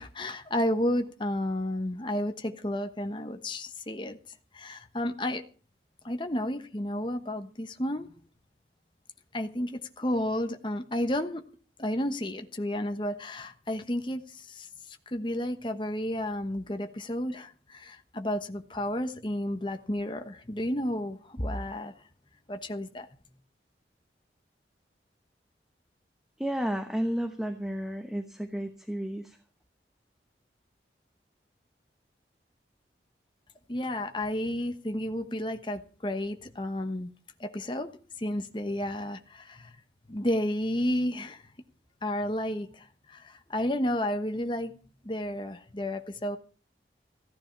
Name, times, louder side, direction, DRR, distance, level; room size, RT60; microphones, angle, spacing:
voice 1, 0.0-4.2 4.5-5.4 6.0-8.1 9.3-11.4 11.8-14.7 15.1-21.9 22.5-23.1 33.7-37.1 37.4-37.9 38.2-39.7 40.1-41.4 42.0-44.7 45.0-46.4, left 1 dB, 25° left, 1.1 m, -32 dB
voice 2, 26.4-29.4, equal, 5° right, 1.0 m, -32 dB
15.0 x 10.5 x 5.9 m
head